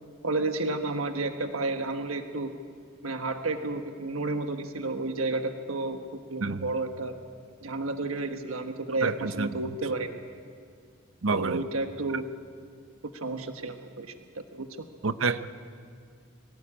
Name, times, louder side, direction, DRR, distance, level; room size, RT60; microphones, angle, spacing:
voice 1, 0.2-2.5 3.0-7.1 7.6-10.2 11.3-12.2 13.1-14.7, right 2 dB, 85° right, 6 dB, 1.4 m, -31 dB
voice 2, 11.2-11.6 15.0-15.5, right 4 dB, 65° right, 12 dB, 0.8 m, -27 dB
23.5 x 18.0 x 8.7 m, 2.1 s
head